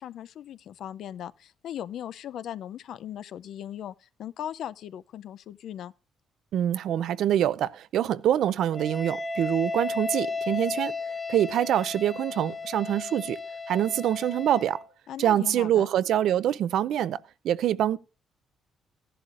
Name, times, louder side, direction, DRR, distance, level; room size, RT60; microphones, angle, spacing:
voice 1, 0.0-5.9 15.1-15.9, left 10 dB, 70° left, 0.5 m, -38 dB
voice 2, 6.5-10.9 11.3-13.4 13.7-14.8 15.2-17.2 17.4-18.0, right 11 dB, 75° right, 0.5 m, -25 dB
Wind instrument woodwind instrument, 8.7-14.9, left 3 dB, 15° left, 1.4 m, -34 dB
15.0 x 11.0 x 2.5 m
cardioid pair, 90°, 0 cm